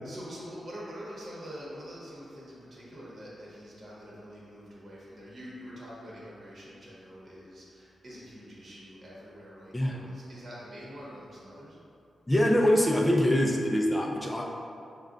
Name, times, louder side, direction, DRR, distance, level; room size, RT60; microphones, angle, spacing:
voice 1, 0.0-11.8, equal, 40° right, -6 dB, 1.0 m, -45 dB
voice 2, 12.3-14.5, equal, 10° left, 0 dB, 0.4 m, -24 dB
6.4 x 2.2 x 2.5 m, 2.4 s
wide cardioid pair, 145°, 0 cm